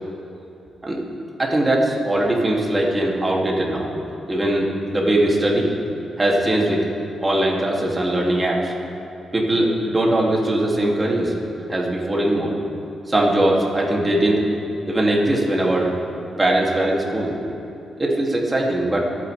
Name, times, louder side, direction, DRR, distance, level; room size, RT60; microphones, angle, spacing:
voice 1, 1.4-3.9 4.3-5.7 6.2-6.9 7.2-8.7 9.3-11.3 11.7-12.6 13.1-14.4 14.8-15.9 16.4-17.3 18.0-19.1, right 1 dB, 20° right, -3 dB, 2.7 m, -20 dB
27.0 x 9.6 x 3.5 m, 2.9 s
cardioid pair, 95°, 0 cm